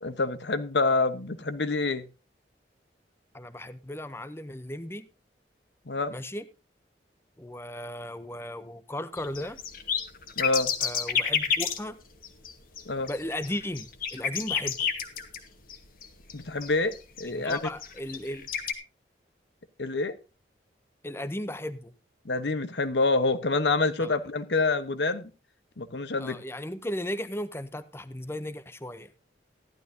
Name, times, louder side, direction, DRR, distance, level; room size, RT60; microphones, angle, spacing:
voice 1, 0.0-2.0 5.9-6.1 10.4-10.7 12.9-13.1 16.3-17.7 19.8-20.1 22.2-25.3 25.8-26.4, left 3 dB, 75° left, 1.1 m, -27 dB
voice 2, 3.3-5.1 6.1-6.5 7.4-9.6 10.8-12.0 13.1-14.9 17.2-18.5 21.0-21.9 24.0-24.2 26.2-29.1, left 1 dB, 15° left, 0.7 m, -36 dB
sound 1, 9.2-11.9 12.2-12.5 12.8-15.8 16.0-17.2 17.5-18.7, left 7 dB, 50° left, 1.4 m, -30 dB
14.5 x 11.5 x 2.8 m
head